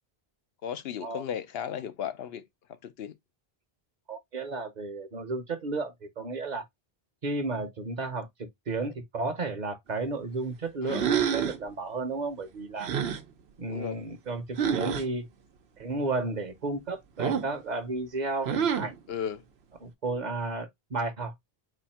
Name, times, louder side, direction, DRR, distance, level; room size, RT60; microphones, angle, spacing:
voice 1, 0.6-2.4 2.8-3.1 10.8-11.1 13.7-14.0 19.1-19.4, left 8 dB, 75° left, 0.9 m, -35 dB
voice 2, 4.1-6.6 7.2-12.9 13.6-15.3 15.8-18.9 19.8-21.3, right 3 dB, 50° right, 0.9 m, -33 dB
sound 1, 10.9-11.6 12.8-13.2 14.6-15.0 17.2-17.6 18.4-19.0, right 7 dB, 80° right, 1.0 m, -27 dB
4.2 x 2.6 x 4.2 m
omnidirectional pair, 1.0 m